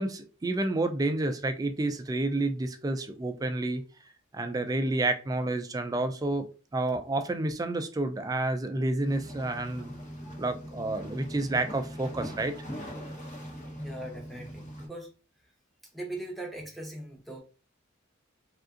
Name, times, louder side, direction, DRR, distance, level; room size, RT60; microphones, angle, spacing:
voice 1, 0.0-3.8 4.3-6.5 6.7-9.9 10.4-12.5, right 2 dB, 20° right, 0.3 m, -29 dB
sound 1, 9.0-14.9, equal, 40° left, 1.0 m, -41 dB
voice 2, 13.8-15.1 15.9-17.4, right 1 dB, ahead, 0.8 m, -40 dB
3.6 x 2.4 x 2.4 m
head